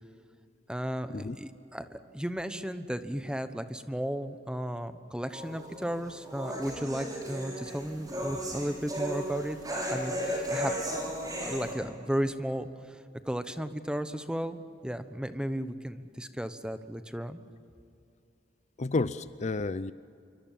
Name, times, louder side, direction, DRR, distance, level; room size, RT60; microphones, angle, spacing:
voice 1, 0.7-11.1 11.4-17.4, equal, 5° right, 10 dB, 1.1 m, -35 dB
sound 1, 5.3-11.7, equal, 20° right, 6.3 m, -35 dB
voice 2, 18.8-19.9, left 3 dB, 40° left, 14 dB, 0.5 m, -31 dB
27.0 x 24.5 x 7.6 m, 2.5 s
head